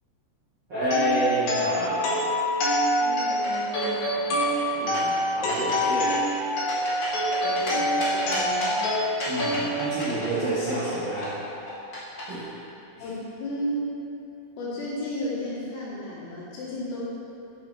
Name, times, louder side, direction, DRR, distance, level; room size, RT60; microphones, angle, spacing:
voice 1, 0.7-2.2 4.8-6.2 9.3-11.3 12.3-12.4 13.0-13.1, right 1 dB, 80° right, -12 dB, 1.0 m, -29 dB
sound 1, 0.8-10.7, equal, 60° left, 2.1 m, -26 dB
voice 2, 3.0-4.7 7.4-8.8 12.4-12.7 13.0-14.0 14.6-17.0, left 1 dB, 90° left, -9 dB, 4.8 m, -34 dB
sound 2, 3.3-4.0 4.4-5.2 5.5-5.8 6.1-7.7 8.0-8.8 9.2-11.0 11.2-12.2, left 1 dB, 40° left, 1.6 m, -33 dB
10.0 x 5.9 x 4.8 m, 2.7 s
omnidirectional pair, 5.6 m